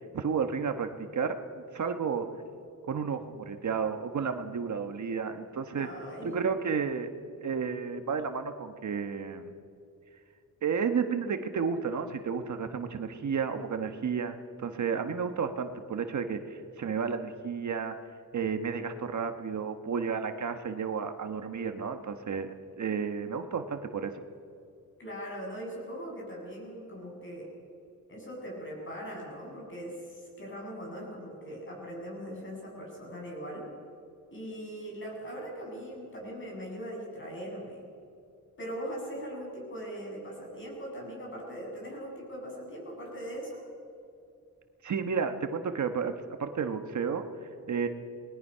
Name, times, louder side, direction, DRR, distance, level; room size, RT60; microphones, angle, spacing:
voice 1, 0.1-1.4 1.7-2.3 2.9-5.9 6.2-7.1 7.4-9.5 10.6-17.9 18.3-24.2 44.8-46.1 46.4-47.9, right 6 dB, 60° right, 7 dB, 1.3 m, -32 dB
voice 2, 5.7-6.3 25.0-27.5 28.1-33.7 34.3-37.8 38.6-43.6, equal, 35° left, -2 dB, 7.5 m, -40 dB
28.5 x 20.5 x 5.7 m, 2.5 s
wide cardioid pair, 180°, 34 cm